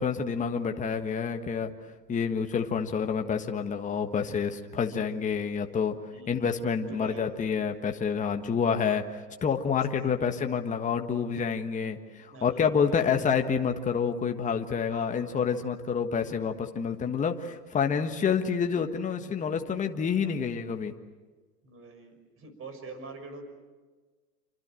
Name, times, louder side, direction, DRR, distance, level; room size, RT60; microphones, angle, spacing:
voice 1, 0.0-1.7 2.1-5.9 6.3-20.9, left 6 dB, 15° left, 5 dB, 1.5 m, -28 dB
voice 2, 4.7-5.1 6.1-6.5 6.8-7.2 10.0-10.1 12.3-13.2 14.9-15.2 17.0-17.1 17.9-18.0 20.2-20.3 21.6-23.4, right 3 dB, 25° right, 8 dB, 6.1 m, -45 dB
27.5 x 25.0 x 7.7 m, 1.3 s
hypercardioid pair, 110°, 49 cm